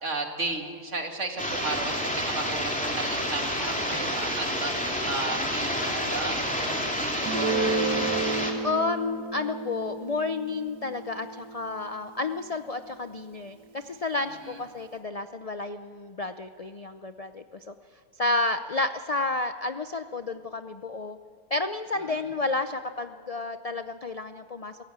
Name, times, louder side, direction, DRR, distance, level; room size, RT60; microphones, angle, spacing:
voice 1, 0.0-4.7 5.1-8.2 14.5-14.6 22.1-22.2, right 2 dB, 50° right, 3 dB, 2.6 m, -34 dB
sound 1, 1.4-8.5, equal, 5° left, 2.6 m, -29 dB
Guitar, 7.3-12.8, right 4 dB, 75° right, 2.0 m, -32 dB
voice 2, 8.6-17.7 18.2-21.2 21.5-24.8, left 3 dB, 65° left, 9 dB, 0.3 m, -31 dB
23.0 x 17.0 x 8.8 m, 2.1 s
omnidirectional pair, 1.7 m